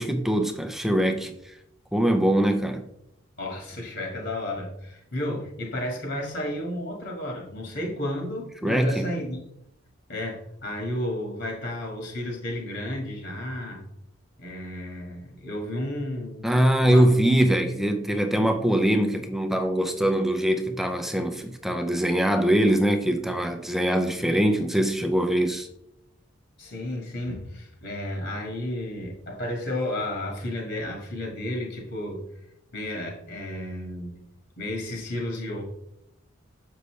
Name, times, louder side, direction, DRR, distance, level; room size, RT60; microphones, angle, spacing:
voice 1, 0.0-1.5 1.9-2.8 8.6-9.1 16.4-25.7, right 1 dB, ahead, 0.5 m, -23 dB
voice 2, 3.4-9.4 10.1-13.8 14.4-16.5 16.8-17.1 26.6-32.2 32.7-34.2 34.6-35.6, left 1 dB, 55° left, 1.7 m, -32 dB
6.6 x 5.4 x 3.2 m
head